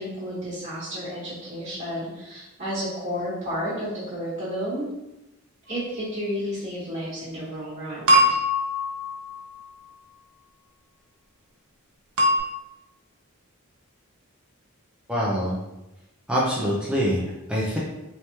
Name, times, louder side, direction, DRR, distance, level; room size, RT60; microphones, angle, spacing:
voice 1, 0.0-4.9 5.7-8.1, equal, 30° right, -12 dB, 1.2 m, -31 dB
sound 1, 8.1-9.6 12.2-12.4, equal, 90° right, 0.6 m, -21 dB
voice 2, 15.1-15.6 16.3-17.8, equal, 5° right, -6 dB, 0.5 m, -25 dB
3.3 x 3.1 x 2.8 m, 0.96 s
head